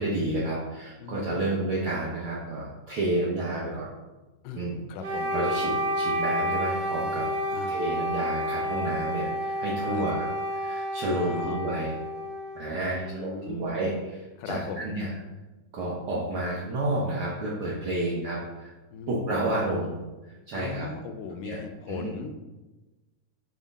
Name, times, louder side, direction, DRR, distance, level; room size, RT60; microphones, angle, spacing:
voice 1, 0.0-3.8 4.6-4.8 5.3-7.2 7.7-11.9 12.5-15.1 15.7-18.7 19.1-20.9 21.4-21.6 21.9-22.1, right 1 dB, 80° right, -5 dB, 1.1 m, -30 dB
voice 2, 1.0-1.7 4.4-5.4 7.5-7.8 9.8-10.1 11.0-11.6 12.7-13.8 14.4-14.9 18.9-19.6 20.5-22.3, left 4 dB, 85° left, 7 dB, 2.2 m, -38 dB
Wind instrument woodwind instrument, 5.0-13.1, equal, 55° right, 1.4 m, -30 dB
7.4 x 3.6 x 4.0 m, 1.1 s
omnidirectional pair, 3.8 m